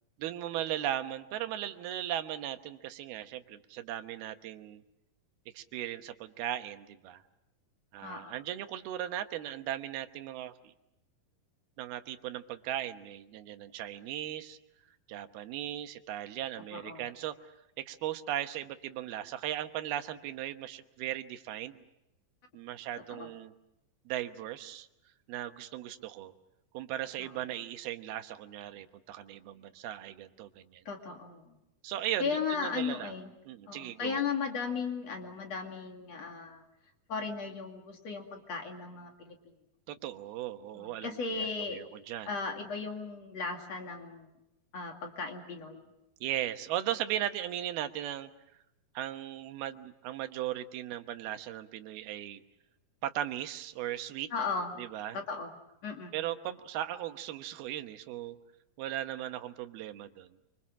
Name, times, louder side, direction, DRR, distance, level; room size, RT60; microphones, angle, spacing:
voice 1, 0.2-4.8 5.5-7.2 7.9-10.7 11.8-14.6 15.1-17.4 17.8-21.8 22.5-23.5 24.1-24.9 25.3-26.3 26.7-30.8 31.8-33.1 33.5-34.2 39.9-42.3 46.2-48.3 48.9-52.4 53.0-54.3 54.8-55.2 56.1-58.4 58.8-60.3, right 12 dB, 90° right, 8 dB, 3.1 m, -37 dB
voice 2, 8.0-8.3 16.7-17.0 23.1-23.3 27.2-27.4 30.8-31.6 32.2-33.3 33.7-36.6 37.1-39.4 40.7-41.8 42.3-44.3 44.7-45.9 54.3-54.7 55.1-55.5 55.8-56.1, left 5 dB, 50° left, 3 dB, 3.2 m, -36 dB
26.5 x 25.5 x 7.5 m, 0.88 s
omnidirectional pair, 4.3 m